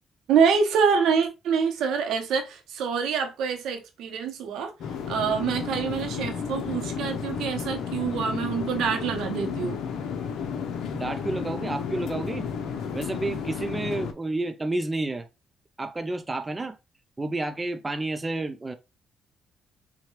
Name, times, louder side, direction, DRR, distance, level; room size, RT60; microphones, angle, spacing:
voice 1, 0.3-4.7 5.1-9.8, right 6 dB, 85° right, 0.9 m, -26 dB
sound 1, 4.8-14.1, left 6 dB, 80° left, 0.6 m, -32 dB
voice 2, 10.9-12.5 12.8-15.3 15.8-16.8 17.2-18.7, right 2 dB, 20° right, 0.5 m, -30 dB
5.7 x 2.3 x 3.1 m
cardioid pair, 90°, 0 cm